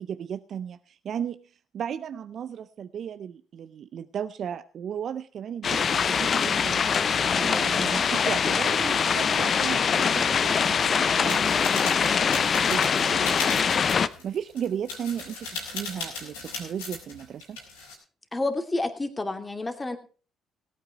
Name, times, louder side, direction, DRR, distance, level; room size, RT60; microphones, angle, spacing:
voice 1, 0.0-1.4 1.7-13.3 14.2-17.6, right 8 dB, 60° right, 13 dB, 0.6 m, -35 dB
sound 1, 5.6-14.1, left 6 dB, 50° left, 0.7 m, -23 dB
sound 2, 11.2-17.9, left 3 dB, 90° left, 4.5 m, -37 dB
voice 2, 18.3-20.0, left 2 dB, 25° left, 6 dB, 2.5 m, -30 dB
17.5 x 9.3 x 4.6 m, 0.37 s
hypercardioid pair, 50°, 0 cm